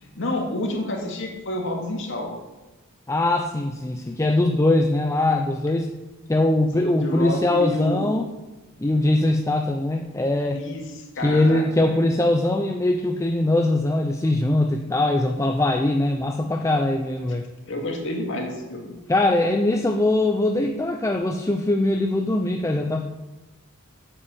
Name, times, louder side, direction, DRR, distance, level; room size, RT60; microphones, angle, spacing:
voice 1, 0.0-2.3 6.7-8.2 10.5-12.6 17.7-18.9, left 1 dB, 60° left, 0 dB, 2.3 m, -30 dB
voice 2, 3.1-5.9 6.3-8.3 8.8-10.6 11.2-17.4 19.1-23.0, left 2 dB, 15° left, 4 dB, 0.5 m, -21 dB
8.4 x 7.9 x 7.3 m, 1.1 s
head